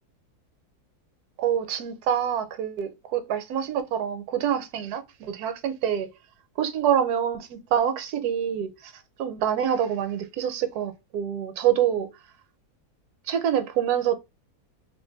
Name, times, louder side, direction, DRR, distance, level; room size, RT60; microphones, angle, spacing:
voice 1, 1.4-6.1 6.6-8.9 9.2-12.1 13.3-14.2, right 9 dB, 75° right, 1.1 m, -26 dB
2.7 x 2.5 x 3.8 m
omnidirectional pair, 1.7 m